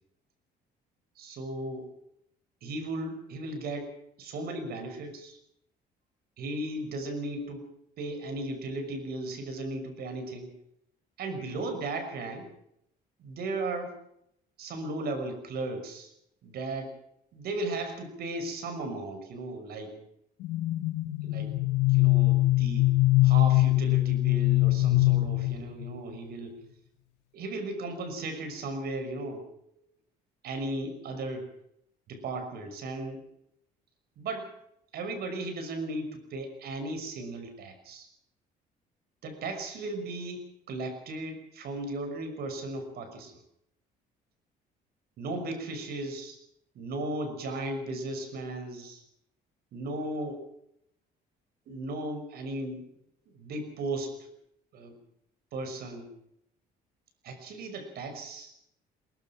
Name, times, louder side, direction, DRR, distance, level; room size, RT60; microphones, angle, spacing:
voice 1, 1.2-1.9 2.6-3.9 4.2-5.4 6.4-7.7 8.0-10.5 11.2-12.5 13.2-14.0 14.6-16.1 16.4-17.0 17.3-20.0 21.2-21.5 21.9-22.9 23.2-26.6 27.3-29.5 30.4-31.5 32.1-33.2 34.2-34.5 34.9-38.1 39.2-43.4 45.2-46.4 46.7-49.0 49.7-50.4 51.7-52.8 53.3-54.3 54.7-55.0 55.5-56.1 57.2-58.5, right 2 dB, 65° right, 8 dB, 6.0 m, -36 dB
sound 1, 20.4-26.0, left 18 dB, 85° left, 1.5 m, -23 dB
22.5 x 20.0 x 6.0 m, 0.74 s
cardioid pair, 110°, 17 cm